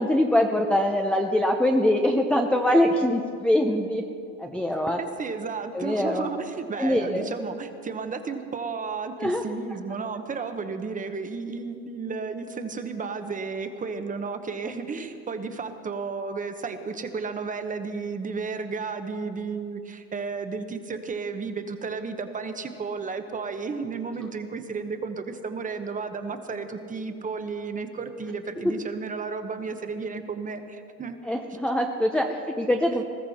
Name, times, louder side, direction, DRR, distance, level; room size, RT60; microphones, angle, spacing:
voice 1, 0.0-4.0 4.4-5.0 5.7-6.3 6.8-7.3 9.2-9.4 28.6-28.7 31.2-33.0, left 1 dB, 5° left, 1 dB, 0.6 m, -23 dB
voice 2, 4.9-31.2, right 4 dB, 20° right, 8 dB, 1.0 m, -33 dB
20.5 x 14.0 x 4.2 m, 2.4 s
supercardioid pair, 120°, 43 cm